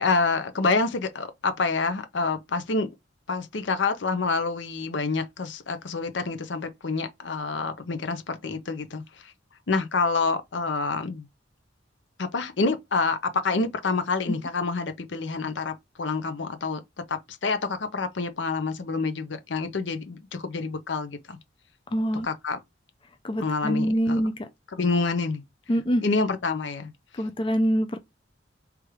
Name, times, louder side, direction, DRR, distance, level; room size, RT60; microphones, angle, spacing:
voice 1, 0.0-2.9 3.3-9.3 9.7-11.2 12.2-16.8 17.1-21.4 22.2-22.6 23.4-24.2 24.7-25.4 26.0-26.9, left 4 dB, 70° left, 0.7 m, -27 dB
voice 2, 21.9-22.3 23.2-24.5 25.7-26.0 27.1-28.0, equal, 30° left, 0.5 m, -25 dB
3.5 x 3.1 x 4.8 m
head